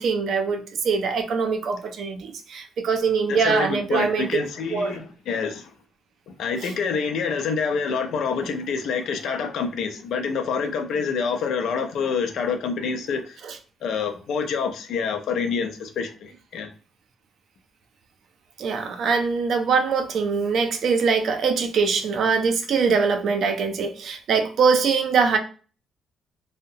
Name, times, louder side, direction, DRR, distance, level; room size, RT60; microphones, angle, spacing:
voice 1, 0.0-4.4 4.7-5.0 6.6-6.7 13.4-13.6 18.6-25.4, right 5 dB, 65° right, 0.5 m, -23 dB
voice 2, 3.3-5.6 6.4-13.3 13.8-16.7, left 5 dB, 75° left, 0.5 m, -27 dB
2.7 x 2.1 x 2.6 m
cardioid pair, 90°, 0 cm